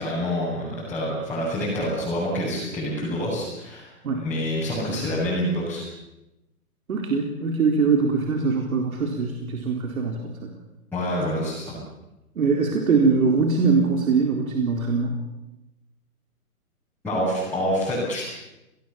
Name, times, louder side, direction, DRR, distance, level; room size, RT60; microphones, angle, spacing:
voice 1, 0.0-3.9 4.1-5.8 10.9-11.8 17.0-18.3, equal, 5° left, -10 dB, 7.7 m, -27 dB
voice 2, 6.9-10.5 12.4-15.2, right 4 dB, 65° right, 2 dB, 4.2 m, -22 dB
29.0 x 19.0 x 7.2 m, 0.97 s
hypercardioid pair, 150°, 45 cm